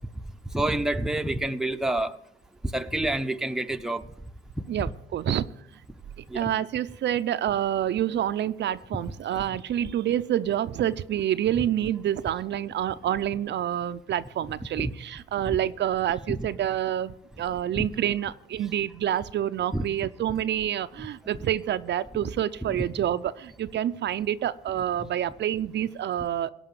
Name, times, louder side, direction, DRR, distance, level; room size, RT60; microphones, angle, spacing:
voice 1, 0.5-2.2 2.7-4.0 4.8-4.9 6.3-6.5 14.8-14.9 15.4-15.6 16.3-16.5 17.8-17.9 19.7-19.8, right 1 dB, 5° right, 0.8 m, -28 dB
voice 2, 4.7-5.4 6.3-26.5, right 11 dB, 60° right, 0.5 m, -28 dB
16.5 x 5.6 x 9.1 m
cardioid pair, 90°, 20 cm